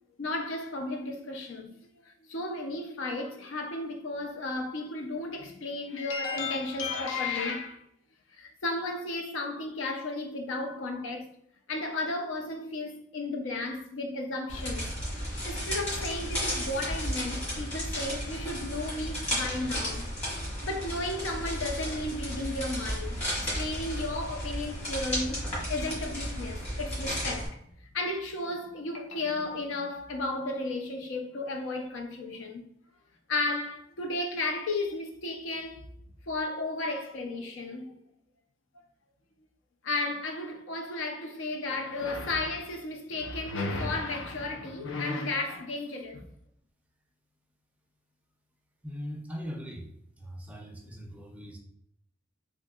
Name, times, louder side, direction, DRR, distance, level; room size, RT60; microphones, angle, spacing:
voice 1, 0.2-1.7 2.0-7.8 8.3-11.3 11.7-14.9 15.4-20.1 20.4-27.6 27.9-32.6 33.3-35.8 36.3-38.0 39.8-46.3, left 2 dB, 70° left, 0.5 m, -34 dB
sound 1, 14.5-27.5, equal, 30° left, 1.5 m, -33 dB
voice 2, 48.8-49.9 50.2-51.6, equal, 5° right, 0.4 m, -40 dB
3.5 x 2.7 x 2.3 m
head